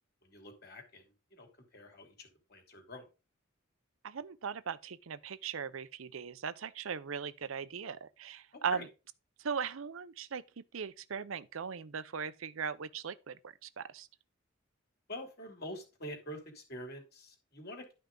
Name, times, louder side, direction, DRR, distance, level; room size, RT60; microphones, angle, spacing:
voice 1, 0.2-1.0 1.3-1.5 1.7-3.1 8.5-8.8 15.1-17.9, left 1 dB, 50° left, 2.9 m, -46 dB
voice 2, 4.0-8.9 9.4-14.1, right 6 dB, 80° right, 0.6 m, -39 dB
11.5 x 5.7 x 3.8 m
head